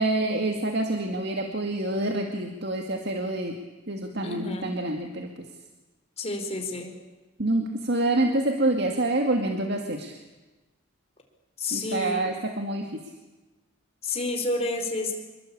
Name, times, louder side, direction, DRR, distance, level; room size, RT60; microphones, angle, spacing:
voice 1, 0.0-3.6 3.9-5.5 7.4-10.2 11.7-13.0, right 2 dB, 55° right, 3 dB, 2.3 m, -27 dB
voice 2, 4.2-4.8 6.2-7.0 11.6-12.3 14.0-15.1, left 2 dB, 30° left, 3 dB, 4.6 m, -30 dB
27.0 x 22.0 x 8.7 m, 1.1 s
head